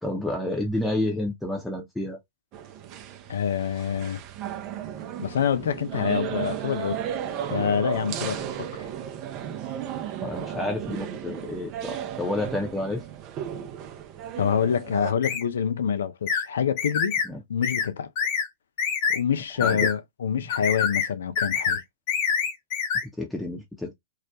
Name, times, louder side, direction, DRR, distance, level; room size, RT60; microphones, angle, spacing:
voice 1, 0.0-2.2 10.2-13.0 17.2-17.4 19.6-19.9 20.3-20.5 23.2-23.9, left 1 dB, 5° left, 0.6 m, -30 dB
sound 1, 2.5-15.1, right 9 dB, 40° right, 0.4 m, -34 dB
voice 2, 3.3-4.2 5.2-7.0 7.5-8.8 14.4-17.2 17.5-18.1 19.1-21.8, left 7 dB, 75° left, 0.4 m, -26 dB
sound 2, 15.2-15.4 16.3-16.5 16.8-17.3 17.6-17.9 18.2-18.5 18.8-19.2 19.6-19.9 20.5-21.1 21.4-21.8 22.1-23.0, left 6 dB, 50° left, 0.7 m, -26 dB
2.3 x 2.0 x 2.7 m
hypercardioid pair, 105°, 0 cm